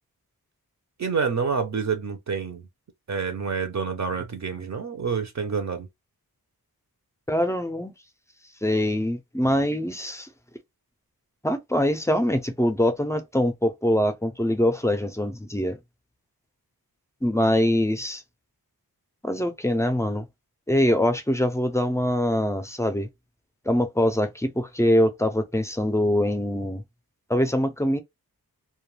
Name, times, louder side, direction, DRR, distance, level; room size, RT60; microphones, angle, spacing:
voice 1, 1.0-2.7 3.1-5.9, right 5 dB, 50° right, 0.5 m, -28 dB
voice 2, 7.3-7.9 8.6-10.3 11.4-15.8 17.2-18.2 19.2-20.3 20.7-23.1 23.7-26.8 27.3-28.0, left 1 dB, 10° left, 0.4 m, -23 dB
2.2 x 2.2 x 3.1 m
wide cardioid pair, 105°, 37 cm